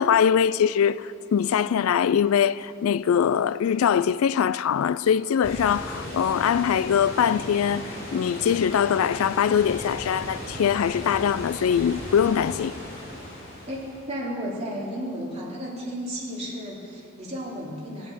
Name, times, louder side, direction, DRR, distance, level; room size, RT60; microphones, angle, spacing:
voice 1, 0.0-12.7, left 8 dB, 85° left, 0.3 m, -22 dB
sound 1, 5.4-14.1, left 1 dB, 40° left, 4.6 m, -37 dB
voice 2, 13.7-18.1, equal, 30° right, 2.8 m, -33 dB
13.5 x 11.5 x 7.2 m
head